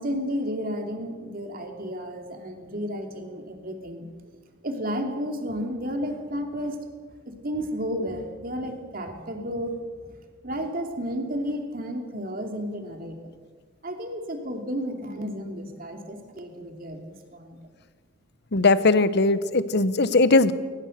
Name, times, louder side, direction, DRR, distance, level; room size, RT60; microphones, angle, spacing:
voice 1, 0.0-4.1 4.6-6.8 7.3-9.8 10.0-10.2 10.4-13.3 13.8-17.6, equal, 45° right, 4 dB, 2.8 m, -32 dB
voice 2, 18.5-20.5, left 3 dB, 55° left, 14 dB, 1.0 m, -19 dB
22.5 x 19.0 x 6.6 m, 1.5 s
head